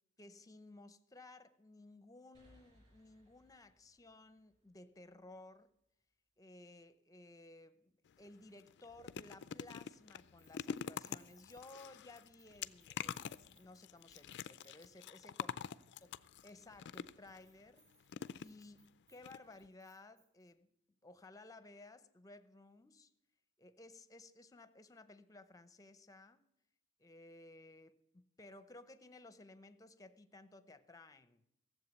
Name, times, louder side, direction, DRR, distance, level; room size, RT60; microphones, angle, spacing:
voice 1, 0.2-5.7 6.4-15.5 16.0-17.9 18.4-20.7 21.0-23.1 23.6-26.4 27.0-31.4, left 2 dB, 15° left, 0.7 m, -57 dB
sound 1, 2.3-5.8, equal, 30° right, 6.2 m, -70 dB
sound 2, 8.1-8.2 8.6-17.4 18.1-18.9 19.2-19.4 19.6-19.7, left 8 dB, 55° left, 0.4 m, -46 dB
Keys jangling, 10.2-15.1 15.4-15.7 15.9-20.5, right 2 dB, 70° right, 7.2 m, -72 dB
15.5 x 7.6 x 8.0 m
head